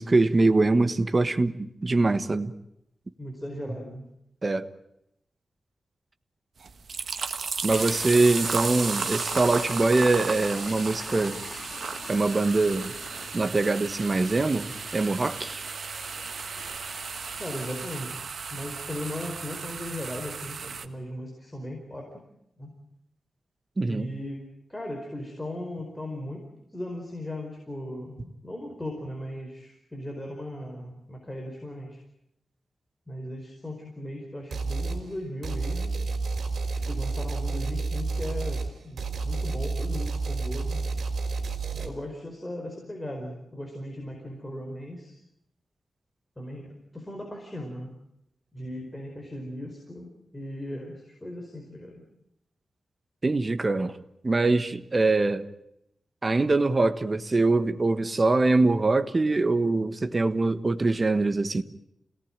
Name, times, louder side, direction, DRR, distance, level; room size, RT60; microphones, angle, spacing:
voice 1, 0.0-2.5 4.4-4.7 7.6-11.4 12.1-12.9 13.3-15.6 23.8-24.1 53.2-54.0 54.2-55.4 56.2-61.6, right 3 dB, 30° right, 1.4 m, -23 dB
voice 2, 3.2-4.1 17.4-18.2 18.5-22.2 22.6-22.7 23.8-24.4 24.7-32.0 33.1-36.0 36.9-40.8 41.8-45.2 46.4-47.9 48.5-52.0, left 1 dB, 10° left, 4.8 m, -37 dB
sound 1, 6.6-20.9, right 5 dB, 65° right, 1.5 m, -34 dB
sound 2, 7.7-17.9, left 4 dB, 60° left, 2.8 m, -43 dB
sound 3, 34.5-35.0 35.4-41.9, right 3 dB, 80° right, 3.9 m, -30 dB
28.0 x 18.0 x 9.0 m
wide cardioid pair, 120°, 0 cm